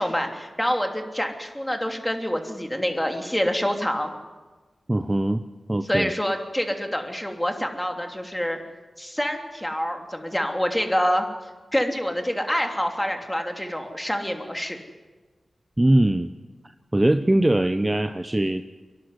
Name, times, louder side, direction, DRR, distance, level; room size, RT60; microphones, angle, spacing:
voice 1, 0.0-4.1 5.9-8.6 9.0-11.2 11.7-14.8, equal, 10° left, 4 dB, 3.1 m, -26 dB
voice 2, 4.9-5.4 5.7-6.1 15.8-16.3 16.9-18.6, right 1 dB, 20° right, 10 dB, 0.8 m, -21 dB
25.0 x 11.5 x 9.7 m, 1.3 s
cardioid pair, 50°, 0 cm